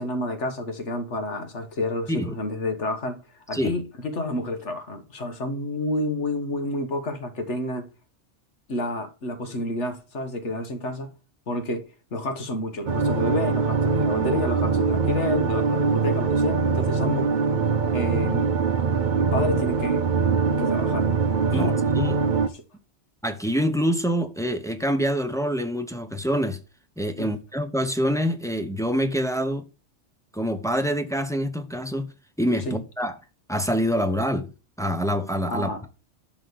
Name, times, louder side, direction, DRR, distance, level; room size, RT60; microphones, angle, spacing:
voice 1, 0.0-3.2 3.5-7.9 8.7-11.1 11.5-11.9 12.1-17.3 17.9-18.5 19.2-20.0 20.6-21.1 21.5-21.7 22.5-22.6 27.2-27.3 32.6-32.8 35.5-35.8, left 1 dB, 75° left, 1.7 m, -29 dB
sound 1, 12.9-22.5, right 5 dB, 45° right, 0.8 m, -23 dB
voice 2, 21.5-22.2 23.2-26.6 27.0-29.7 30.3-32.1 32.4-33.1 33.5-34.5 34.8-35.7, equal, 5° left, 0.9 m, -26 dB
11.5 x 3.9 x 6.9 m
omnidirectional pair, 1.2 m